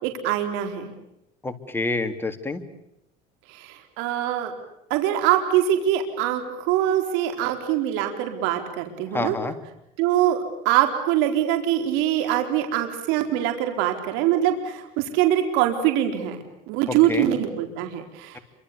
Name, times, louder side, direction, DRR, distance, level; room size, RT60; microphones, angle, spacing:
voice 1, 0.0-0.9 3.5-4.5 4.9-9.4 10.0-16.4 16.7-18.4, right 11 dB, 80° right, 5 dB, 4.2 m, -23 dB
voice 2, 1.4-2.6 9.1-9.5 16.9-17.3, left 3 dB, 10° left, 6 dB, 3.5 m, -28 dB
28.5 x 26.0 x 7.0 m, 0.84 s
supercardioid pair, 110°, 20 cm